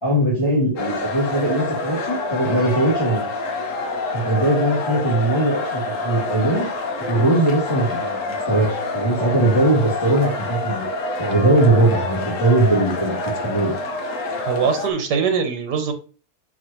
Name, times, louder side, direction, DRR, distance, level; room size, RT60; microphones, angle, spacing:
voice 1, 0.0-3.2 4.1-6.7 7.1-10.8 11.2-13.7, right 1 dB, 15° left, -9 dB, 2.8 m, -20 dB
sound 1, 0.8-14.9, left 3 dB, 55° left, 1.2 m, -27 dB
voice 2, 14.4-15.9, right 6 dB, 80° right, 6 dB, 1.6 m, -22 dB
8.0 x 4.8 x 2.9 m, 0.36 s
omnidirectional pair, 1.8 m